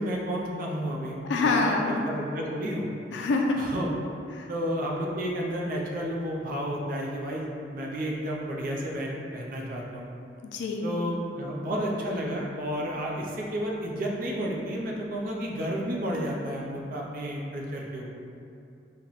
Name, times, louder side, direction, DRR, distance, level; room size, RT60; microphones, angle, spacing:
voice 1, 0.0-2.9 3.6-3.9 4.5-10.1 10.8-18.1, equal, 50° right, -2 dB, 0.5 m, -31 dB
voice 2, 1.2-1.9 3.1-3.6 4.4-4.5 10.4-10.9, left 3 dB, 75° left, 1 dB, 0.3 m, -26 dB
3.0 x 2.1 x 3.8 m, 2.7 s
head